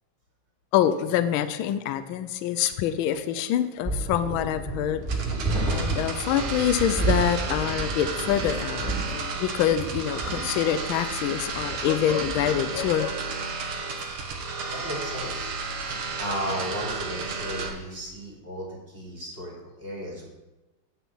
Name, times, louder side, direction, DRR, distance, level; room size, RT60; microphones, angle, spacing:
voice 1, 0.7-5.0 5.7-13.2, left 10 dB, 80° left, 11 dB, 1.3 m, -26 dB
sound 1, 3.8-12.9, right 3 dB, ahead, 2.9 m, -31 dB
sound 2, 5.0-17.7, right 4 dB, 80° right, 2.1 m, -33 dB
voice 2, 14.7-15.5 16.2-20.3, equal, 25° right, -4 dB, 2.8 m, -35 dB
9.4 x 6.2 x 5.6 m, 1.1 s
omnidirectional pair, 2.3 m